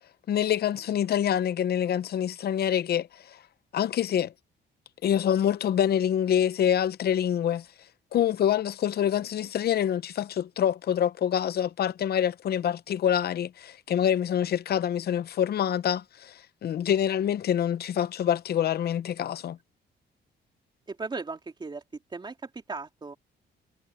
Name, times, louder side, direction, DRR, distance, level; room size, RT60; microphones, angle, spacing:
voice 1, 0.3-3.4 3.7-4.3 5.0-7.7 8.1-19.6, left 10 dB, 55° left, 0.7 m, -26 dB
voice 2, 20.9-21.8 22.1-23.2, right 4 dB, 25° right, 3.0 m, -37 dB
cardioid pair, 130°, 19 cm